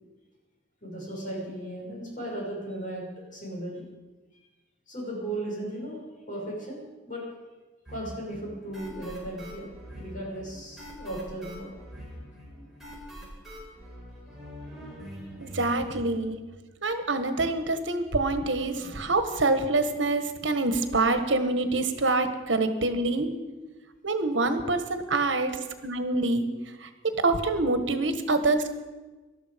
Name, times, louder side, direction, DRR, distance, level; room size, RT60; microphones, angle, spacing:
voice 1, 0.8-3.8 4.9-7.2 7.9-9.7 10.0-11.7, right 1 dB, 45° left, -4 dB, 6.5 m, -36 dB
sound 1, 7.9-16.1, equal, ahead, 4.7 m, -44 dB
voice 2, 15.4-16.4 16.8-23.3 24.0-25.6 25.8-26.4 26.8-28.7, right 2 dB, 80° right, 9 dB, 1.4 m, -26 dB
19.0 x 12.5 x 5.2 m, 1.2 s
head